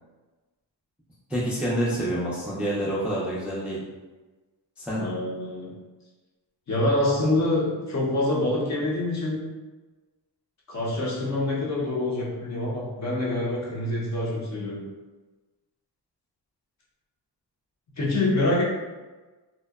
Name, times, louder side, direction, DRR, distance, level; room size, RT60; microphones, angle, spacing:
voice 1, 1.3-3.8 4.8-5.0, right 1 dB, 5° right, -7 dB, 0.3 m, -27 dB
voice 2, 5.0-5.8 6.7-9.5 10.7-14.8 18.0-18.6, left 1 dB, 40° left, -5 dB, 0.6 m, -26 dB
2.7 x 2.1 x 2.2 m, 1.2 s
wide cardioid pair, 130°, 43 cm